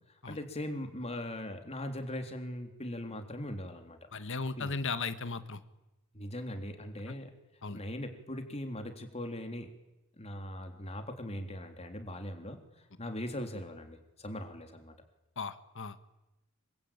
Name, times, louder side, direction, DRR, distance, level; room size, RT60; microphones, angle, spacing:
voice 1, 0.3-4.0 4.6-4.8 6.1-7.3 7.7-9.7 10.2-12.6 13.0-14.9, left 1 dB, 30° left, 5 dB, 3.6 m, -40 dB
voice 2, 4.1-5.6 7.6-7.8 15.4-16.0, left 4 dB, 60° left, 11 dB, 1.7 m, -36 dB
26.5 x 24.5 x 9.0 m, 0.97 s
head